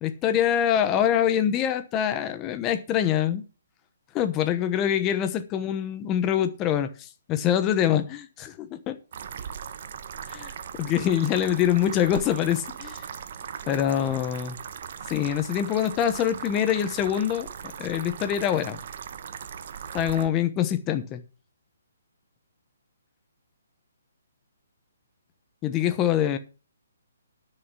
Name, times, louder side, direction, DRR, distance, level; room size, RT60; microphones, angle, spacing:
voice 1, 0.0-3.4 4.1-8.9 10.3-10.5 10.8-13.0 13.7-14.6 15.1-17.5 17.8-18.8 19.9-21.2 25.6-26.4, left 10 dB, 15° left, 0.9 m, -25 dB
sound 1, 9.1-20.3, right 7 dB, 40° right, 0.9 m, -39 dB
10.5 x 6.5 x 6.1 m
hypercardioid pair, 170°, 0 cm